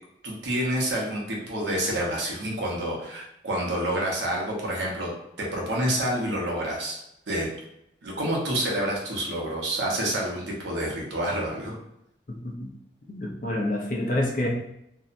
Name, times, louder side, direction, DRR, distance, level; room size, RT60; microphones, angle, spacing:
voice 1, 0.2-5.1 5.4-7.0 7.3-7.5 8.0-11.8, right 1 dB, 90° right, -2 dB, 0.7 m, -28 dB
voice 2, 12.3-12.7 13.1-14.5, left 1 dB, 45° left, 0 dB, 0.5 m, -28 dB
2.6 x 2.1 x 2.5 m, 0.80 s
head